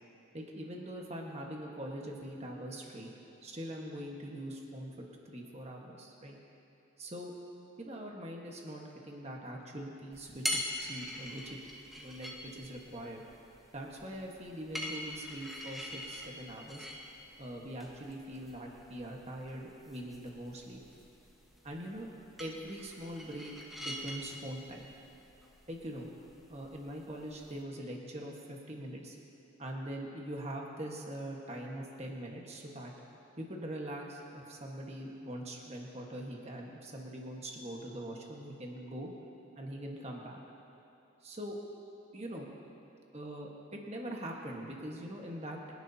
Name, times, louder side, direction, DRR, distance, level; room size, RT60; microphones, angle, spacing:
voice 1, 0.3-3.1 3.4-6.3 7.0-7.3 7.8-11.6 11.9-13.2 13.7-16.9 17.4-20.8 21.6-22.1 22.4-24.9 25.7-26.1 26.5-29.2 29.6-32.9 33.4-39.1 39.5-40.4 41.2-41.5 42.1-42.5 43.1-45.7, right 1 dB, 30° right, -1 dB, 1.4 m, -42 dB
sound 1, 10.1-27.6, left 1 dB, ahead, 1.1 m, -44 dB
27.0 x 11.0 x 2.8 m, 3.0 s
head